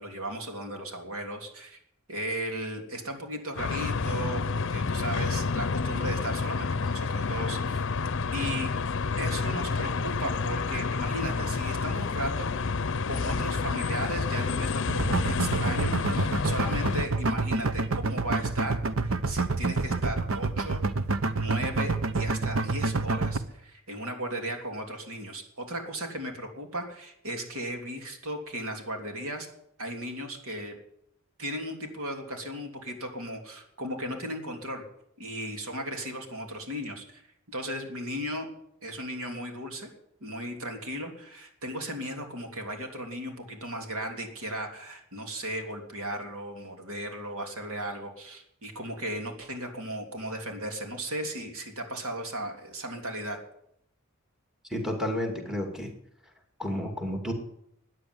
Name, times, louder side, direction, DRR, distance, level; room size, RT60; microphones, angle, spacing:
voice 1, 0.0-1.8 2.1-7.8 8.3-8.7 9.2-12.5 13.1-21.0 21.3-29.5 29.8-30.8 31.4-34.8 35.2-37.2 37.5-38.5 38.8-39.9 40.2-53.4, right 1 dB, 90° right, 3 dB, 3.3 m, -36 dB
sound 1, 3.6-17.0, left 4 dB, 65° left, 0.7 m, -29 dB
sound 2, 14.9-23.4, right 3 dB, 70° right, 1.0 m, -27 dB
voice 2, 54.7-55.9 56.6-57.3, equal, 5° right, 3 dB, 2.5 m, -31 dB
14.5 x 9.7 x 9.7 m, 0.75 s
head